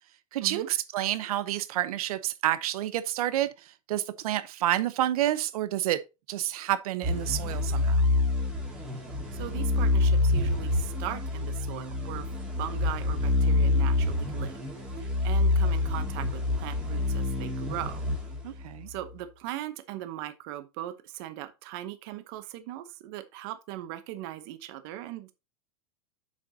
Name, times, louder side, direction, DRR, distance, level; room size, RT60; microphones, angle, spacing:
voice 1, 0.3-6.0 6.3-8.0 18.4-18.9, right 13 dB, 70° right, 0.9 m, -29 dB
sound 1, 7.0-18.9, left 2 dB, 5° right, 1.9 m, -27 dB
voice 2, 9.3-12.3 12.6-14.6 15.0-18.0 18.9-25.3, right 13 dB, 40° right, 0.9 m, -39 dB
7.1 x 7.0 x 2.8 m
supercardioid pair, 175°, 19 cm